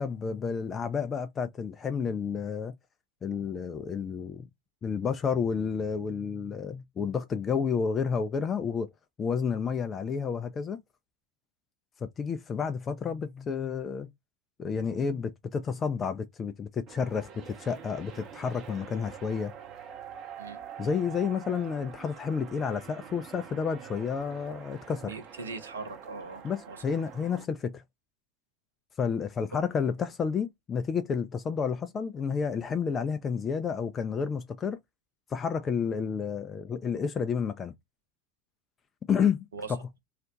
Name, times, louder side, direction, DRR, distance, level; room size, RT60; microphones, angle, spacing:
voice 1, 0.0-2.7 3.2-4.5 4.8-8.9 9.2-10.8 12.0-14.1 14.6-19.5 20.8-25.1 26.4-27.8 29.0-34.8 35.3-37.7 39.1-39.8, left 6 dB, 30° left, 0.4 m, -30 dB
sound 1, 16.9-27.4, right 8 dB, 45° right, 0.7 m, -46 dB
voice 2, 25.0-26.8 39.5-39.7, right 4 dB, 80° right, 0.6 m, -40 dB
2.4 x 2.1 x 3.8 m
figure-of-eight pair, 80°, 0 cm